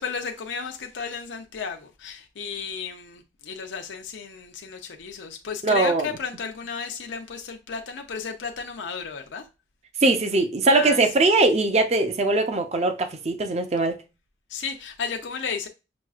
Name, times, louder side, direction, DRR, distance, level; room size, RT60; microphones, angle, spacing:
voice 1, 0.0-9.4 10.7-11.0 14.5-15.7, left 6 dB, 85° left, 0.6 m, -33 dB
voice 2, 5.6-6.1 10.0-14.0, right 2 dB, 35° right, 0.5 m, -21 dB
5.9 x 2.3 x 2.4 m
head